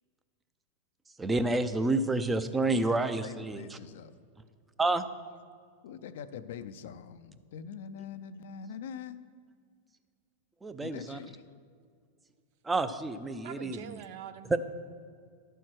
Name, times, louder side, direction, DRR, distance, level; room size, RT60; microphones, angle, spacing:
voice 1, 1.2-3.8 4.8-5.0 10.6-11.2 12.6-13.8 14.5-14.6, right 2 dB, 15° right, 11 dB, 0.5 m, -29 dB
voice 2, 3.2-4.1 5.8-9.2 10.8-11.5, left 7 dB, 70° left, 11 dB, 0.5 m, -43 dB
voice 3, 13.4-14.6, right 9 dB, 60° right, 11 dB, 0.6 m, -44 dB
11.5 x 4.5 x 6.1 m, 2.1 s
hypercardioid pair, 110°, 0 cm